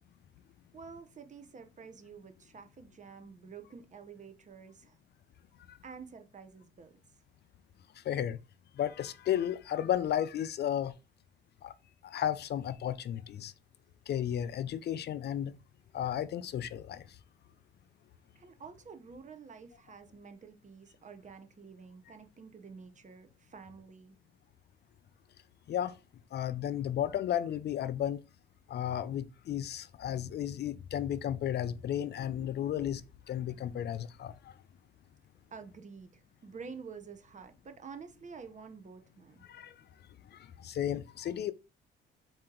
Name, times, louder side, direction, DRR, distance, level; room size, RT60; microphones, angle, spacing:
voice 1, 0.7-5.0 5.8-7.0 18.3-24.2 35.5-39.5, right 5 dB, 40° right, 0.8 m, -49 dB
voice 2, 8.0-8.4 8.8-10.9 11.6-11.7 12.0-13.5 14.1-15.5 15.9-17.0 25.7-26.0 26.3-28.2 28.7-33.0 33.3-34.5 39.5-39.8 40.3-41.5, left 10 dB, 55° left, 0.4 m, -33 dB
4.2 x 2.9 x 3.8 m
cardioid pair, 90°, 20 cm